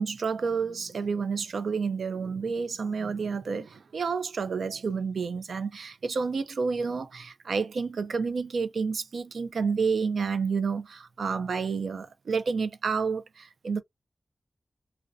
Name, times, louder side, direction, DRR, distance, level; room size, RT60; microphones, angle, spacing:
voice 1, 0.0-13.8, right 5 dB, 85° right, 0.4 m, -30 dB
2.5 x 2.1 x 2.3 m
wide cardioid pair, 130°, 0 cm